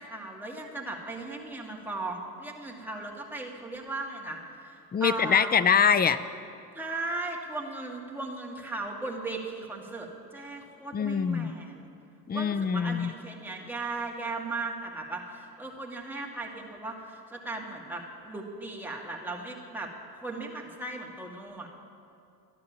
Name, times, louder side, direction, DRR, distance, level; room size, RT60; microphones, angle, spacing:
voice 1, 0.0-5.5 6.7-11.9 12.3-19.9 20.2-21.7, right 2 dB, 5° right, -1 dB, 2.1 m, -37 dB
voice 2, 4.9-6.2 10.9-11.5 12.3-13.1, left 7 dB, 20° left, 15 dB, 0.5 m, -24 dB
12.0 x 10.5 x 7.3 m, 2.5 s
supercardioid pair, 80°, 45 cm